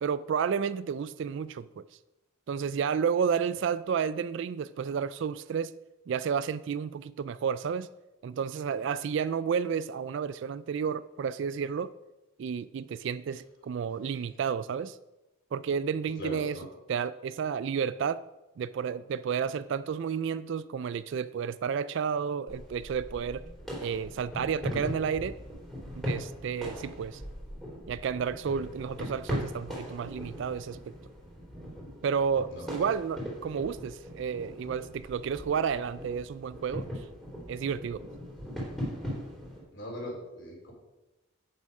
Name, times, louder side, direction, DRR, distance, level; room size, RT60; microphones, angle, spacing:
voice 1, 0.0-1.8 2.5-5.7 6.1-7.9 8.2-11.9 12.4-15.0 15.5-16.6 16.9-18.2 18.6-23.4 23.8-25.4 26.0-27.2 27.9-30.9 32.0-36.9 37.5-38.0, right 6 dB, 60° right, 16 dB, 0.3 m, -31 dB
voice 2, 16.2-16.7 32.5-32.9 39.7-40.7, equal, 60° left, -2 dB, 3.5 m, -40 dB
sound 1, 22.5-39.6, equal, ahead, 3.3 m, -40 dB
8.8 x 7.2 x 5.3 m, 1.0 s
head